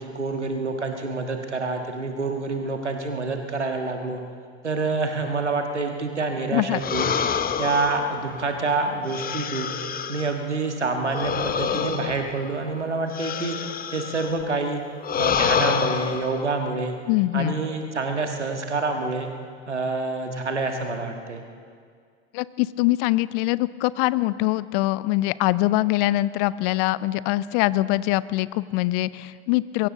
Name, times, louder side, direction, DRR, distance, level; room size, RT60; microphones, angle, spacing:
voice 1, 0.0-4.2 4.6-7.1 7.6-9.8 10.1-13.6 13.9-14.8 15.2-17.0 17.3-19.3 19.7-21.4, right 3 dB, 90° right, 4 dB, 1.6 m, -27 dB
sound 1, 6.8-10.5 11.1-14.4 15.0-16.4, left 7 dB, 25° left, 0.9 m, -27 dB
voice 2, 17.1-17.5 22.3-29.9, left 18 dB, 50° left, 19 dB, 0.5 m, -23 dB
23.0 x 15.5 x 3.9 m, 2.1 s
figure-of-eight pair, 75°, 34 cm